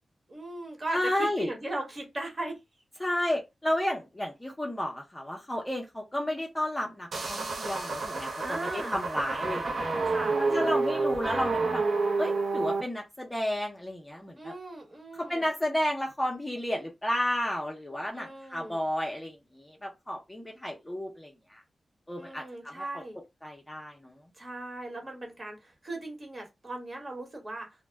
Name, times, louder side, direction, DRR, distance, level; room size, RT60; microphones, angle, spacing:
voice 1, 0.3-2.6 8.4-9.0 10.0-11.0 14.4-15.4 18.1-18.9 22.2-23.2 24.3-27.7, right 2 dB, 35° right, 1.1 m, -38 dB
voice 2, 0.9-1.5 3.0-9.9 10.4-11.8 12.2-14.5 15.2-21.6 22.1-23.0 23.4-24.2, left 1 dB, 15° left, 0.6 m, -32 dB
sound 1, 7.1-12.8, right 3 dB, 60° right, 0.5 m, -29 dB
2.1 x 2.0 x 3.2 m
wide cardioid pair, 100°, 0 cm